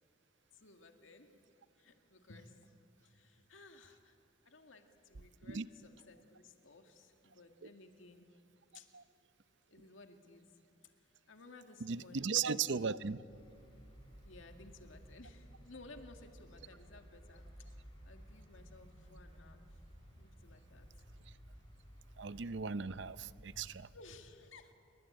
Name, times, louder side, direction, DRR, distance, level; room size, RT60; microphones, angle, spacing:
voice 1, 0.5-1.3 1.8-4.2 4.4-8.4 8.7-8.9 9.7-12.5 14.0-19.8 20.2-21.5 23.9-24.7, left 3 dB, 75° left, 5 dB, 2.1 m, -58 dB
voice 2, 11.8-13.2 21.3-21.4 22.2-23.9, right 5 dB, 60° right, 15 dB, 0.7 m, -37 dB
sound 1, 13.3-23.7, equal, 25° left, 5.8 m, -56 dB
29.0 x 23.0 x 8.9 m, 2.6 s
head